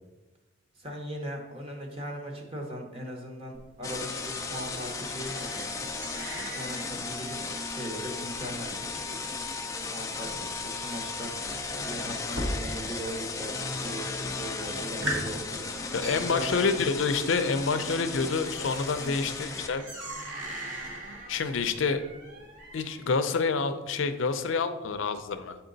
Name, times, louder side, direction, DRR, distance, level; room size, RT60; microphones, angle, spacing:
voice 1, 0.7-5.9 6.5-7.4 7.7-9.5 9.9-11.3 11.8-15.8 16.3-16.7 19.0-19.2, equal, 30° right, 1 dB, 1.0 m, -39 dB
sound 1, 3.5-13.1 13.4-14.0 14.4-14.5 14.8-23.1, right 1 dB, 65° right, 1.6 m, -40 dB
sound 2, 3.8-19.7, left 3 dB, 15° left, 0.4 m, -35 dB
voice 2, 15.9-19.8 21.3-22.0 22.7-25.6, left 4 dB, 75° left, 9 dB, 0.5 m, -28 dB
7.5 x 4.4 x 3.9 m, 1.1 s
head